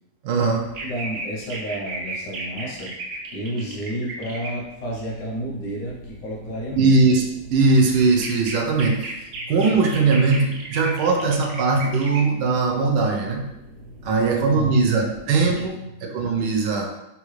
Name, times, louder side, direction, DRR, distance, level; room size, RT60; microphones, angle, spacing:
voice 1, 0.2-0.6 6.8-7.2 7.5-9.2 9.5-13.5 14.0-15.7 16.0-16.9, right 4 dB, 85° right, 1 dB, 1.2 m, -20 dB
sound 1, 0.5-4.5 4.8-15.7, right 2 dB, 60° right, 0.9 m, -37 dB
voice 2, 0.8-3.0 3.3-6.9 9.3-9.5 13.7-15.1 15.7-15.9, equal, 90° left, -3 dB, 1.4 m, -32 dB
3.7 x 2.3 x 3.1 m, 0.90 s
omnidirectional pair, 1.8 m